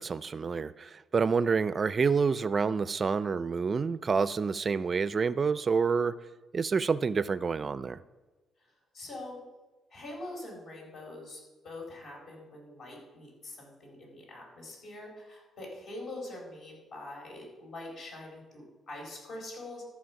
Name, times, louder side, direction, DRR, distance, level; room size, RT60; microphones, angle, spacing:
voice 1, 0.0-6.1 6.5-8.0, right 5 dB, 40° right, 16 dB, 0.4 m, -28 dB
voice 2, 8.6-9.4 9.9-19.8, left 2 dB, 65° left, -1 dB, 4.2 m, -44 dB
13.5 x 5.7 x 5.9 m, 1.2 s
cardioid pair, 90°, 0 cm